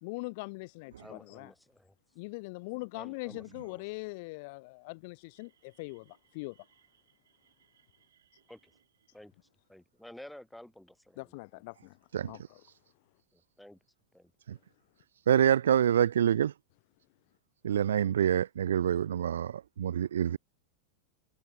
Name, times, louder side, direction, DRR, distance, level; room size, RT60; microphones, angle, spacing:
voice 1, 0.0-1.5 2.2-6.6 11.2-12.0 12.2-12.6, left 27 dB, 50° left, 0.7 m, -42 dB
voice 2, 1.0-1.9 2.9-3.8 8.5-8.7 9.1-9.3 9.7-11.3 13.3-13.8 14.1-14.3, left 1 dB, ahead, 5.1 m, -52 dB
voice 3, 15.3-16.5 17.6-20.4, right 9 dB, 65° right, 0.3 m, -26 dB
figure-of-eight pair, 90°, 0 cm